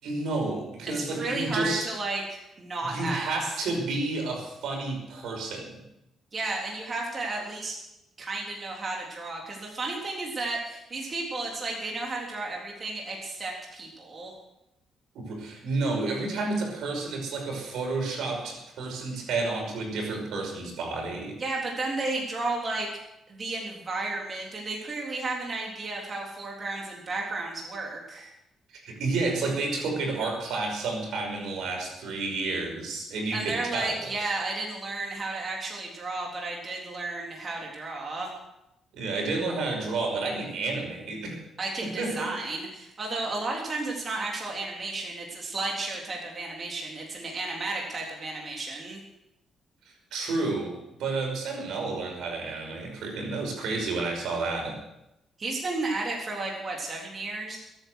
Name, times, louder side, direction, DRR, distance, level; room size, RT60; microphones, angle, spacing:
voice 1, 0.0-1.9 2.8-5.8 15.1-21.4 28.7-34.0 38.9-41.4 41.8-42.3 50.1-54.8, right 3 dB, 80° right, 1 dB, 5.7 m, -30 dB
voice 2, 0.9-3.5 6.3-7.8 8.2-14.3 21.4-22.9 23.3-28.3 33.3-38.3 41.6-49.0 55.4-57.6, right 2 dB, 35° right, -1 dB, 3.5 m, -33 dB
21.5 x 9.2 x 6.5 m, 0.89 s
cardioid pair, 90°, 0 cm